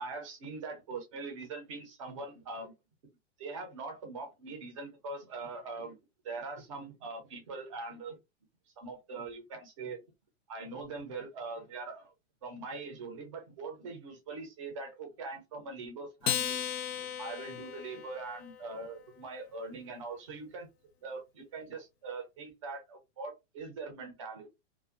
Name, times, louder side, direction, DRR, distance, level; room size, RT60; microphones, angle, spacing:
voice 1, 0.0-2.7 3.4-6.0 6.2-8.2 8.8-10.0 10.5-12.1 12.4-16.6 17.0-20.7 21.0-24.5, right 3 dB, 30° right, 0.5 m, -42 dB
Acoustic guitar, 16.2-18.9, left 9 dB, 60° left, 0.6 m, -36 dB
2.5 x 2.2 x 2.4 m
supercardioid pair, 175°, 36 cm